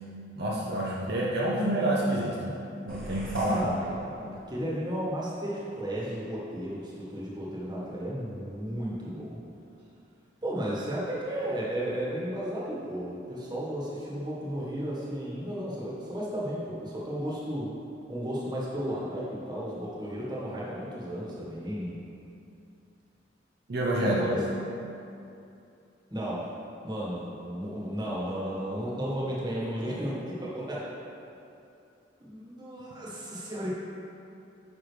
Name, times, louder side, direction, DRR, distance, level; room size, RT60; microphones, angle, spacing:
voice 1, 0.4-2.6 2.8-3.6 23.7-24.4, right 1 dB, 55° right, -5 dB, 0.8 m, -28 dB
sound 1, 2.9-4.7, equal, 5° left, 1.5 m, -43 dB
voice 2, 3.5-9.4 10.4-17.7 18.1-21.9 24.0-24.4 26.1-26.4 26.8-30.9 32.2-33.7, equal, 20° right, -6 dB, 1.5 m, -34 dB
9.2 x 5.8 x 3.3 m, 2.7 s
head